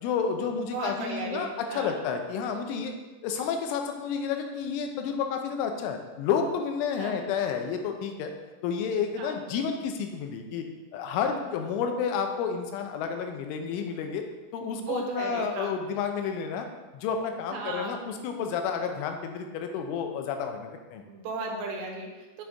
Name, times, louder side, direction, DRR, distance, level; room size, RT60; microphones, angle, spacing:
voice 1, 0.0-2.9 3.2-8.3 8.6-10.7 10.9-14.2 14.5-16.7 16.9-21.0, left 6 dB, 85° left, 5 dB, 3.2 m, -30 dB
voice 2, 0.7-1.9 7.0-7.2 9.2-9.4 14.7-15.7 17.5-18.0 21.1-22.4, right 3 dB, 75° right, 1 dB, 3.1 m, -35 dB
8.0 x 6.1 x 3.5 m, 1.2 s
omnidirectional pair, 5.5 m